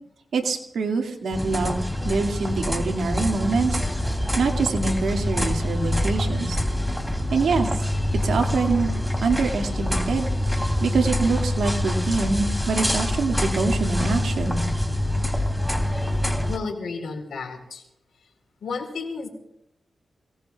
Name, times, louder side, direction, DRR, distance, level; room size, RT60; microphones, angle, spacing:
voice 1, 0.3-3.8 4.4-6.6 7.3-7.8 8.2-8.9 9.2-14.6, right 4 dB, 80° right, 3 dB, 2.1 m, -25 dB
sound 1, 1.3-16.6, left 1 dB, 5° left, 3.1 m, -25 dB
voice 2, 16.5-17.9 18.2-18.3 18.6-19.3, left 4 dB, 80° left, 3 dB, 4.0 m, -32 dB
28.0 x 18.5 x 2.4 m, 0.81 s
cardioid pair, 50°, 0 cm